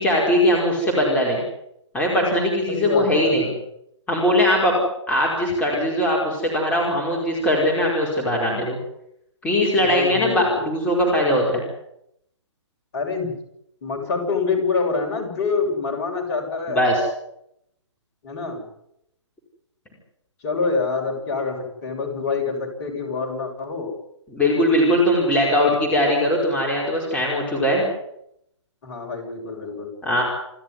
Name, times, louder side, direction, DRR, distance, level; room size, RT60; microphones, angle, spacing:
voice 1, 0.0-1.4 1.9-3.5 4.1-4.7 5.1-8.8 9.4-11.6 16.7-17.0 24.3-27.9 30.0-30.2, left 1 dB, 10° left, -3 dB, 5.0 m, -20 dB
voice 2, 2.7-3.6 9.7-10.6 12.9-13.4 13.8-16.9 18.2-18.6 20.4-23.9 25.5-25.7 28.8-29.9, left 4 dB, 35° left, 1 dB, 7.2 m, -26 dB
28.5 x 13.0 x 9.6 m, 0.78 s
figure-of-eight pair, 140°, 16 cm